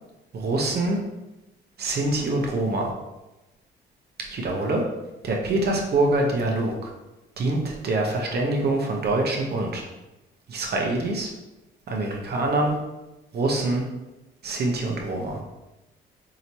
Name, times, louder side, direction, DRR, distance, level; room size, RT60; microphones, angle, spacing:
voice 1, 0.3-1.0 1.8-2.9 4.3-4.8 5.2-6.9 7.4-9.8 10.5-11.3 11.9-12.8 13.3-13.8 14.4-15.4, right 2 dB, 55° right, 0 dB, 0.8 m, -25 dB
4.8 x 2.9 x 2.7 m, 1.0 s
cardioid pair, 90°, 20 cm